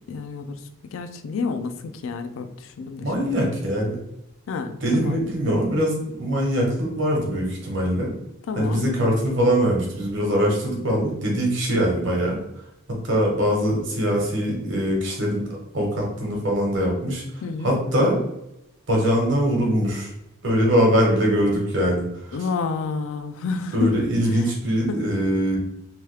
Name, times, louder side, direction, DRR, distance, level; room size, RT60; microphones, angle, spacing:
voice 1, 0.1-0.6 0.9-3.3 4.5-5.2 8.5-8.9 17.4-17.7 22.3-24.0 24.9-25.0, left 4 dB, 80° left, 8 dB, 0.3 m, -29 dB
voice 2, 3.0-4.0 4.8-8.1 8.6-12.4 12.9-15.5 15.7-17.2 17.6-18.2 18.9-20.1 20.4-22.4 23.7-25.6, equal, 65° right, -1 dB, 1.0 m, -22 dB
3.0 x 2.3 x 3.2 m, 0.84 s
head